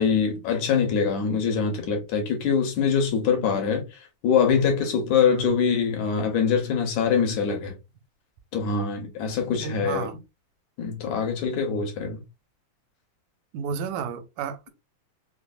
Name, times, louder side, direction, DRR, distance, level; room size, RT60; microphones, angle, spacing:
voice 1, 0.0-7.8 8.5-10.1 10.8-12.2, left 6 dB, 75° left, 2.1 m, -24 dB
voice 2, 9.6-10.2 13.5-14.7, right 6 dB, 85° right, 2.0 m, -32 dB
5.1 x 2.0 x 2.4 m
omnidirectional pair, 3.6 m